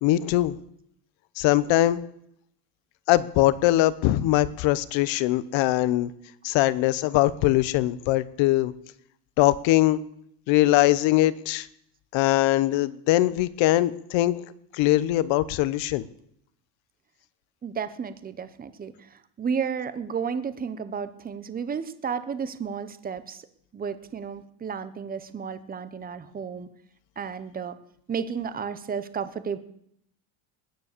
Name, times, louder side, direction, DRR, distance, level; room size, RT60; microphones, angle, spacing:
voice 1, 0.0-0.6 1.4-2.0 3.1-6.1 6.4-8.7 9.4-10.0 10.5-11.7 12.1-14.5 14.7-16.1, left 15 dB, 65° left, 17 dB, 1.0 m, -22 dB
voice 2, 17.6-18.9 19.4-23.4 23.7-26.7 27.2-27.8 28.1-29.6, right 6 dB, 20° right, 13 dB, 0.9 m, -32 dB
21.0 x 9.7 x 6.7 m, 0.73 s
cardioid pair, 150°, 50 cm